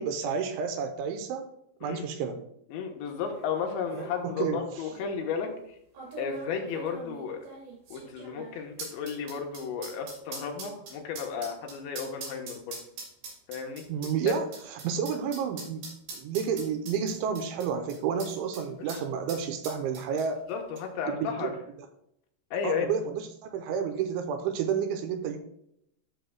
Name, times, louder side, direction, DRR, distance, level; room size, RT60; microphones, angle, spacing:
voice 1, 0.0-1.5 1.8-2.4 4.2-4.6 13.9-15.8 16.1-20.4 21.1-21.5 22.6-25.4, right 7 dB, 85° right, 7 dB, 3.0 m, -30 dB
voice 2, 2.7-5.5 6.2-7.4 7.9-12.8 13.5-13.8 18.8-19.0 20.5-21.5 22.5-22.9, left 6 dB, 75° left, 2 dB, 3.2 m, -33 dB
sound 1, 3.4-3.5 3.7-4.1 4.9-5.0 6.0-18.6 18.9-19.0 19.3-20.5 20.8-20.9, right 4 dB, 65° right, 4.5 m, -42 dB
13.5 x 6.6 x 2.2 m, 0.77 s
omnidirectional pair, 5.5 m